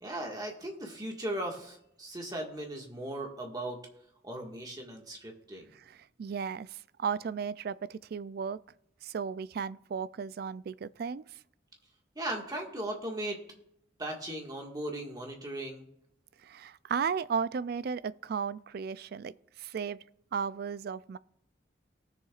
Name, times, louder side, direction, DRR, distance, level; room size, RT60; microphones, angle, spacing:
voice 1, 0.0-3.8 4.2-5.7 12.2-13.4 14.0-15.9, right 1 dB, 20° right, 1.8 m, -37 dB
voice 2, 5.7-8.6 9.0-11.2 16.4-20.0 20.3-21.2, right 6 dB, 55° right, 0.3 m, -35 dB
18.5 x 6.8 x 2.5 m
head